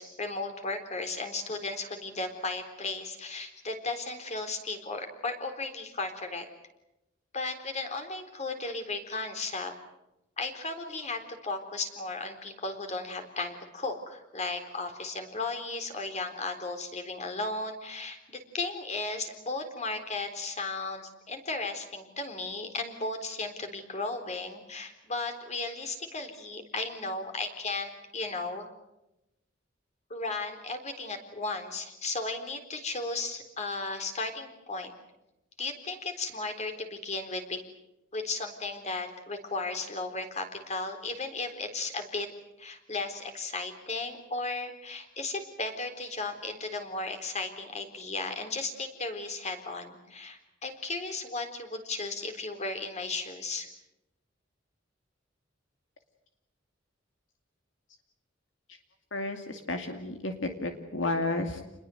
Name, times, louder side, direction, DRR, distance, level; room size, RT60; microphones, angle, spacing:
voice 1, 0.0-6.5 7.3-9.7 10.4-28.7 30.1-34.9 35.6-37.6 38.1-42.3 42.6-53.7, left 3 dB, 35° left, 6 dB, 4.0 m, -35 dB
voice 2, 59.1-61.6, left 2 dB, 75° left, 5 dB, 2.5 m, -32 dB
29.0 x 21.5 x 7.9 m, 0.92 s
head